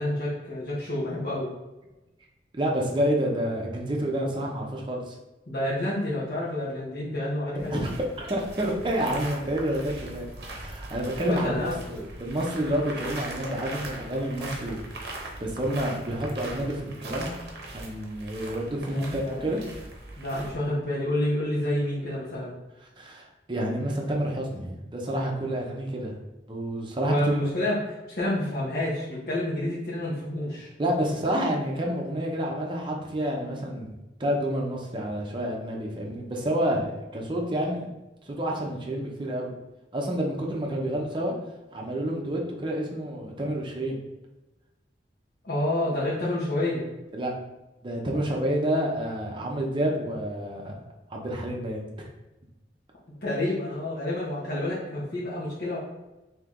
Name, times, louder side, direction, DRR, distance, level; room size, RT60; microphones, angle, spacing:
voice 1, 0.0-1.5 5.5-7.8 11.2-11.8 18.9-19.6 20.2-22.5 27.0-30.7 45.4-46.9 53.2-55.8, left 1 dB, 60° left, -8 dB, 0.9 m, -29 dB
voice 2, 2.5-5.2 7.7-7.9 8.2-10.3 10.6-14.8 15.4-17.3 17.7-19.6 23.0-26.1 26.5-27.4 30.8-33.9 34.2-37.9 38.3-39.5 39.9-41.3 41.7-44.0 47.1-47.3 47.8-50.7 51.1-51.8, right 1 dB, 25° right, -1 dB, 0.6 m, -29 dB
sound 1, 7.6-20.5, right 2 dB, 65° right, 0.7 m, -40 dB
3.2 x 2.8 x 3.6 m, 1.0 s
head